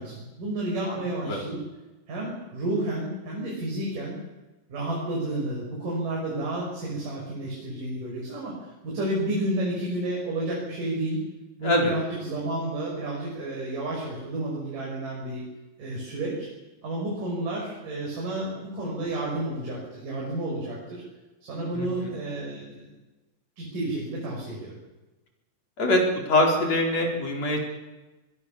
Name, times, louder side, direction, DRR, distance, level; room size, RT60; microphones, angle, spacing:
voice 1, 0.0-1.6 2.1-4.2 4.7-11.2 11.6-15.4 15.8-16.5 16.8-21.0 21.4-22.9 23.6-24.8, right 1 dB, 75° right, -3 dB, 7.3 m, -31 dB
voice 2, 11.6-11.9 21.7-22.2 25.8-26.0 26.3-27.6, left 1 dB, 50° left, 2 dB, 5.5 m, -23 dB
25.5 x 21.5 x 7.3 m, 1.1 s
omnidirectional pair, 3.8 m